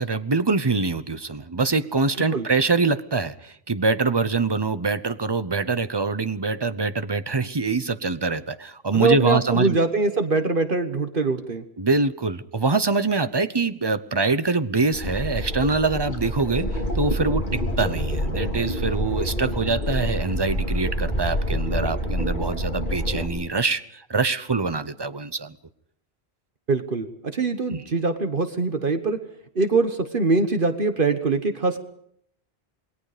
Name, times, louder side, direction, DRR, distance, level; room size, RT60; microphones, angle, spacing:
voice 1, 0.0-9.8 11.8-16.7 16.9-25.6 27.7-27.8, right 3 dB, 25° right, 12 dB, 0.8 m, -24 dB
voice 2, 8.9-11.6 26.7-29.2 29.5-31.8, right 3 dB, 55° right, 8 dB, 1.4 m, -23 dB
sound 1, 14.9-23.3, equal, 50° left, 4.3 m, -27 dB
27.5 x 21.0 x 5.0 m, 0.69 s
omnidirectional pair, 1.1 m